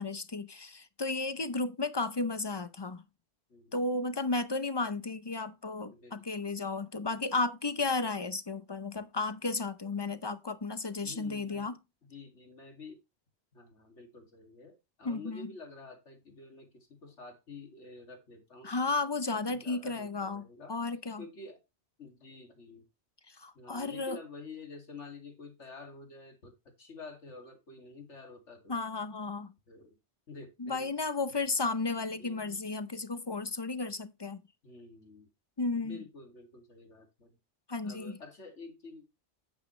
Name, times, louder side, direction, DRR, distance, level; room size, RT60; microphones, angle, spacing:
voice 1, 0.0-3.0 3.7-11.7 15.0-15.5 18.6-21.2 23.3-24.2 28.7-29.5 30.6-34.4 35.6-36.0 37.7-38.2, left 3 dB, 30° left, 0.5 m, -33 dB
voice 2, 5.9-6.5 11.0-11.7 12.0-13.0 13.5-18.7 19.5-20.7 21.2-21.6 22.0-22.9 23.5-26.5 26.8-28.7 29.7-30.0 30.3-30.9 32.2-32.6 34.6-35.3 35.8-37.4 37.8-39.0, left 3 dB, 85° left, 2.7 m, -49 dB
9.6 x 8.5 x 3.1 m
omnidirectional pair, 1.2 m